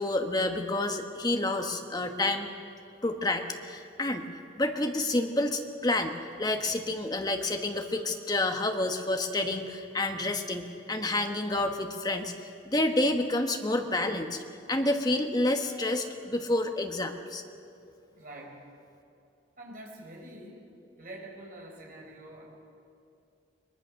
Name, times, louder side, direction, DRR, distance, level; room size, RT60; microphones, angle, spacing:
voice 1, 0.0-2.5 3.0-4.3 4.6-6.1 6.4-14.4 14.7-17.4, left 2 dB, 20° left, 5 dB, 1.2 m, -29 dB
voice 2, 18.1-18.7 19.6-20.7 21.0-22.4, right 1 dB, 45° right, -1 dB, 4.5 m, -46 dB
22.0 x 21.0 x 6.5 m, 2.6 s
head